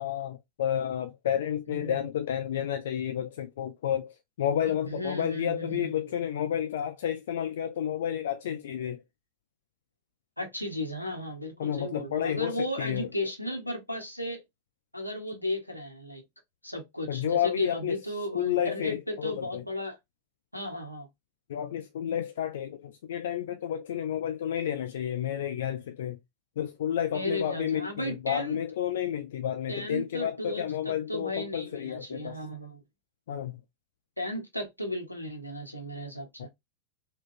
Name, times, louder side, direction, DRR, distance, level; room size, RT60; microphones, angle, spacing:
voice 1, 0.0-9.0 11.6-13.1 17.1-18.0 18.3-19.6 21.5-26.2 26.6-32.4 33.3-33.6 36.4-36.5, left 10 dB, 60° left, 0.3 m, -31 dB
voice 2, 4.9-5.9 10.4-14.4 14.9-16.2 16.6-20.0 20.5-21.1 26.8-28.6 29.7-32.8 34.2-36.5, left 1 dB, 90° left, 1.0 m, -35 dB
3.6 x 2.2 x 2.5 m
figure-of-eight pair, 90°, 0 cm